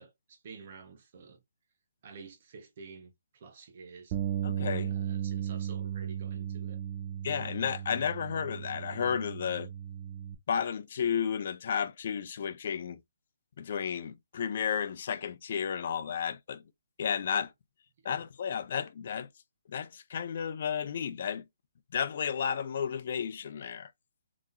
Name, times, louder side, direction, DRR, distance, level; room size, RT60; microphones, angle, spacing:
voice 1, 0.0-1.4 2.0-4.2 4.9-6.8 18.0-18.1, right 5 dB, 45° right, 0.9 m, -50 dB
Bass guitar, 4.1-10.4, right 10 dB, 30° right, 0.5 m, -36 dB
voice 2, 4.4-4.9 7.2-9.7 10.5-13.0 13.6-16.6 17.0-17.5 18.0-19.3 19.7-21.4 21.9-23.9, left 7 dB, 50° left, 0.5 m, -32 dB
3.6 x 3.0 x 2.4 m
hypercardioid pair, 150°, 0 cm